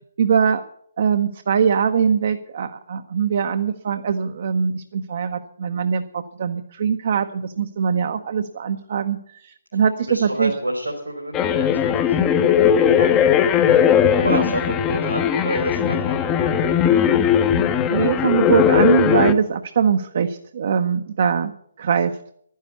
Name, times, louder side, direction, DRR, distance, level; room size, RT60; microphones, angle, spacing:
voice 1, 0.2-0.6 1.0-10.5 12.9-13.1 14.3-14.4 17.9-21.5 21.8-22.2, right 7 dB, 50° right, 7 dB, 0.9 m, -22 dB
voice 2, 10.1-12.2 14.2-16.7, right 1 dB, 90° right, 0 dB, 3.3 m, -29 dB
sound 1, 11.3-19.3, left 9 dB, 20° left, 0.8 m, -18 dB
11.5 x 10.5 x 8.2 m, 0.68 s
figure-of-eight pair, 135°, 0 cm